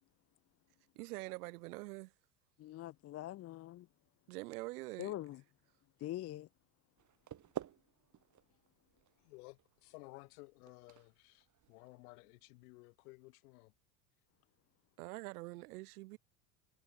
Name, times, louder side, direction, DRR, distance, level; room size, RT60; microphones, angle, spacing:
voice 1, 0.9-2.1 4.3-5.1 15.0-16.2, right 21 dB, 65° right, 3.0 m, -45 dB
voice 2, 2.6-3.9 5.0-5.4 6.0-6.5, left 14 dB, 30° left, 0.7 m, -43 dB
sound 1, 7.0-12.9, right 10 dB, 35° right, 5.9 m, -51 dB
voice 3, 9.2-13.7, left 26 dB, 65° left, 5.4 m, -56 dB
hypercardioid pair, 85°, 48 cm